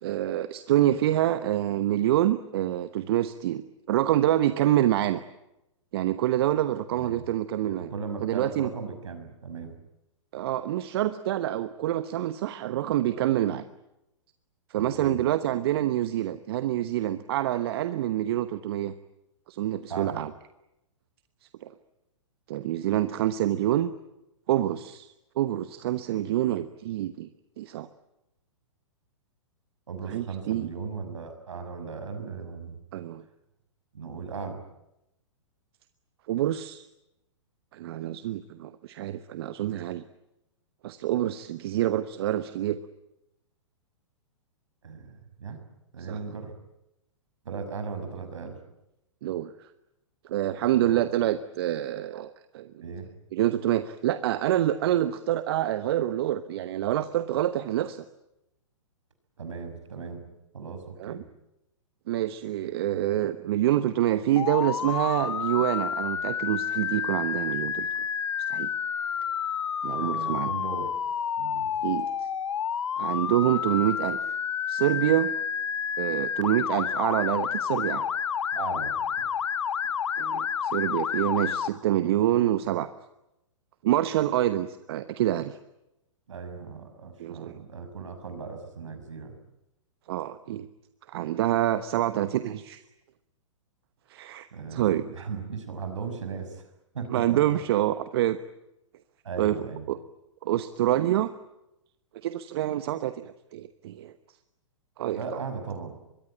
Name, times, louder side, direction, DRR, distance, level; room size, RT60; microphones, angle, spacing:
voice 1, 0.0-5.2 5.9-7.9 8.2-8.7 10.3-13.6 14.7-18.9 19.5-20.3 21.6-21.7 22.5-23.9 24.5-27.3 27.6-27.9 30.1-30.7 32.9-33.2 36.3-36.9 37.7-40.0 40.8-42.8 46.1-46.2 49.2-49.5 50.2-52.8 53.3-58.0 61.0-61.2 62.1-67.9 68.5-68.7 69.8-70.5 71.8-72.1 73.0-74.2 74.7-75.3 76.0-78.0 80.2-82.9 83.8-85.6 87.2-87.6 90.1-90.7 91.1-92.8 94.1-95.0 97.1-98.4 99.4-99.6 99.9-100.0 100.4-101.3 102.2-104.1 105.0-105.2, right 13 dB, 50° right, 12 dB, 1.1 m, -26 dB
voice 2, 6.9-7.2 7.6-9.7 14.8-15.2 19.9-20.2 29.9-32.8 33.9-34.6 44.8-45.6 45.9-46.5 47.4-48.6 50.7-51.0 52.8-53.1 59.4-60.2 60.5-61.2 69.9-70.9 71.4-71.8 78.5-79.2 86.3-89.3 94.5-96.6 96.9-97.4 99.2-99.9 105.1-106.0, right 5 dB, 70° right, 7 dB, 6.2 m, -37 dB
Motor vehicle (road) / Siren, 64.4-81.7, left 8 dB, 70° left, 1.0 m, -30 dB
25.0 x 22.5 x 9.1 m, 0.88 s
figure-of-eight pair, 115°, 16 cm